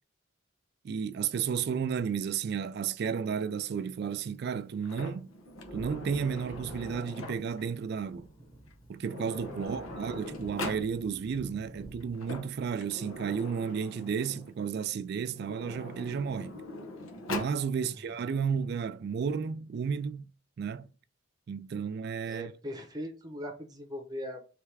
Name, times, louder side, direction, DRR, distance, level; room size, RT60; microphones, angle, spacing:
voice 1, 0.8-5.3 5.7-8.3 8.9-16.6 17.3-20.3 20.6-20.9 21.5-22.5, right 6 dB, 50° right, 0.3 m, -33 dB
Sliding door, 4.8-7.7 8.7-8.8 9.0-10.9 12.0-14.5 15.3-17.6, left 2 dB, 85° left, 0.9 m, -41 dB
Wind / Thunder, 5.5-13.7 14.0-14.1, right 1 dB, 15° left, 1.4 m, -50 dB
voice 2, 17.8-18.1 22.3-24.4, equal, 20° right, 0.8 m, -40 dB
3.4 x 3.3 x 4.6 m
head